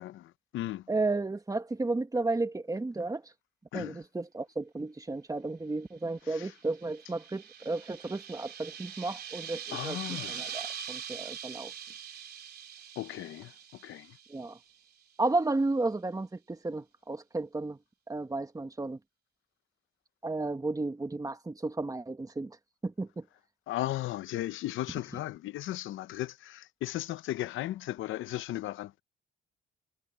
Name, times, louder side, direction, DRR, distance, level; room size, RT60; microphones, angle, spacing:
voice 1, 0.0-0.8 3.7-4.0 6.3-6.5 9.7-10.5 13.0-13.5 13.8-14.2 23.7-29.0, left 15 dB, 80° left, 0.7 m, -36 dB
voice 2, 0.9-3.2 3.7-10.0 10.3-11.7 14.3-14.6 15.2-17.8 18.1-19.0 20.2-22.6 22.8-23.2, right 2 dB, 20° right, 1.8 m, -33 dB
sound 1, 6.4-14.7, right 8 dB, 55° right, 3.3 m, -43 dB
cardioid pair, 90°, 20 cm